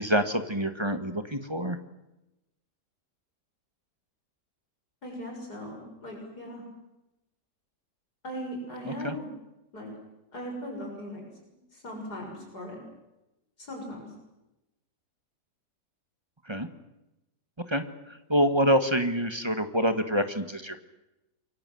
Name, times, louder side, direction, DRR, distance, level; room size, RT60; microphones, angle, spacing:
voice 1, 0.0-1.8 8.9-9.1 16.5-16.7 17.7-20.8, equal, 15° right, 8 dB, 1.6 m, -26 dB
voice 2, 5.0-6.6 8.2-9.3 9.7-9.9 10.3-11.2 11.7-12.8 13.6-14.1, equal, 65° left, 0 dB, 7.4 m, -38 dB
28.0 x 24.0 x 7.8 m, 0.96 s
omnidirectional pair, 1.8 m